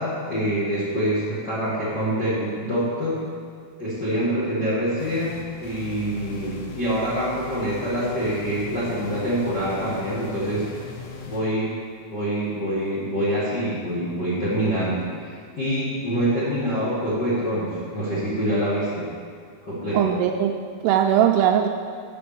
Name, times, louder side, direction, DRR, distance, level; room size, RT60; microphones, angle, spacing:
voice 1, 0.0-3.2 3.8-10.8 11.3-11.8 12.1-19.1 19.6-20.1, equal, 55° left, -9 dB, 1.2 m, -25 dB
sound 1, 5.0-11.4, left 3 dB, 80° left, 1.8 m, -39 dB
voice 2, 19.9-21.7, right 9 dB, 85° right, 3 dB, 2.4 m, -20 dB
7.1 x 6.8 x 6.9 m, 2.2 s
omnidirectional pair, 5.0 m